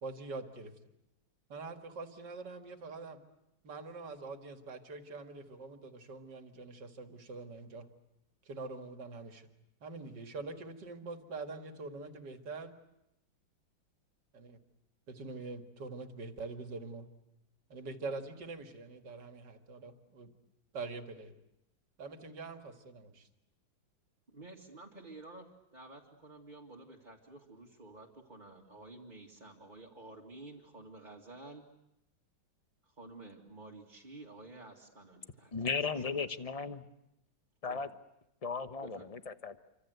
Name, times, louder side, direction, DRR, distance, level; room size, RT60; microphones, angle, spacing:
voice 1, 0.0-0.7 1.5-3.2 3.6-7.9 8.4-9.5 9.8-12.7 14.3-14.6 15.1-17.1 17.7-20.3 20.7-21.3 22.0-23.3, right 3 dB, 60° right, 6 dB, 2.6 m, -44 dB
voice 2, 24.3-31.6 32.8-35.8 37.7-37.8 38.8-39.0, right 2 dB, 25° right, -4 dB, 2.3 m, -51 dB
voice 3, 35.5-36.9 37.6-37.9 38.4-39.6, left 5 dB, 30° left, 10 dB, 0.7 m, -36 dB
27.5 x 25.5 x 8.1 m, 0.87 s
omnidirectional pair, 2.1 m